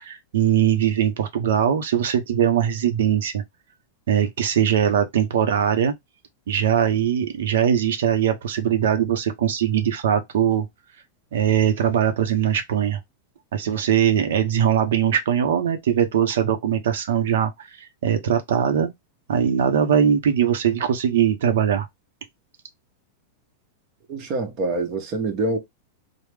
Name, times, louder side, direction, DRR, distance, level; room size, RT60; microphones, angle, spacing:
voice 1, 0.0-3.4 4.1-5.9 6.5-10.7 11.3-13.0 13.5-17.5 17.8-18.9 19.3-21.9, right 9 dB, 80° right, 0.6 m, -21 dB
voice 2, 24.1-25.6, right 2 dB, 30° right, 0.8 m, -25 dB
3.2 x 2.0 x 3.2 m
supercardioid pair, 160°, 0 cm